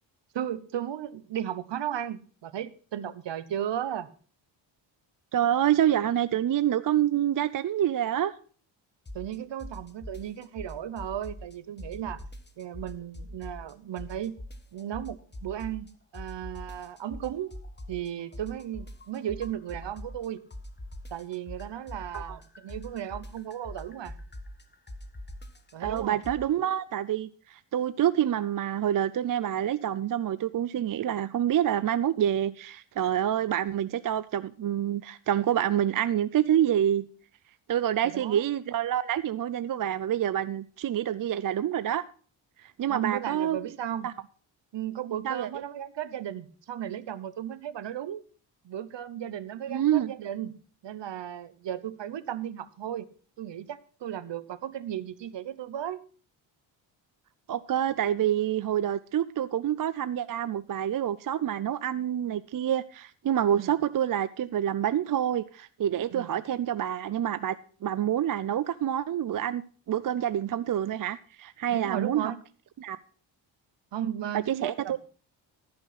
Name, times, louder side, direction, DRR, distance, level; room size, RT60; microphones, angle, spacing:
voice 1, 0.3-4.1 9.1-12.2 12.6-14.4 14.7-17.5 17.9-20.4 21.1-24.1 25.7-26.2 38.0-38.5 42.9-44.1 44.7-48.2 48.6-53.1 53.4-56.0 63.5-63.7 66.1-66.3 71.7-72.4 73.9-75.0, right 10 dB, 60° right, 16 dB, 1.0 m, -35 dB
voice 2, 5.3-8.3 22.1-22.4 25.8-37.0 37.7-42.0 42.6-43.6 44.0-44.1 45.2-45.5 49.7-50.1 57.5-67.6 67.8-69.6 69.9-72.3 72.8-73.0 74.3-75.0, right 10 dB, 45° right, 15 dB, 0.5 m, -27 dB
sound 1, 9.1-9.3 9.6-11.5 11.8-13.7 14.0-15.9 16.1-20.3 20.5-26.4, left 1 dB, 20° left, 1.4 m, -42 dB
14.5 x 5.8 x 5.8 m, 0.42 s
cardioid pair, 75°, 48 cm